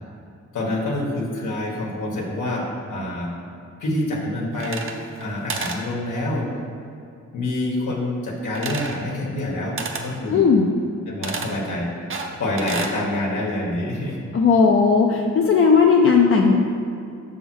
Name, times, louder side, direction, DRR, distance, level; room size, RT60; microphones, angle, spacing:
voice 1, 0.5-3.3 3.8-6.5 7.3-10.4 11.1-11.9 12.4-14.2, left 1 dB, 90° left, -3 dB, 1.4 m, -26 dB
sound 1, 4.5-5.2 5.5-5.8 8.6-9.0 9.8-10.1 11.2-11.5 12.1-13.0, right 4 dB, 45° right, 0.6 m, -30 dB
voice 2, 10.3-10.7 14.3-16.7, left 5 dB, 45° left, 0 dB, 0.5 m, -16 dB
7.1 x 3.6 x 6.2 m, 2.5 s
wide cardioid pair, 165°, 30 cm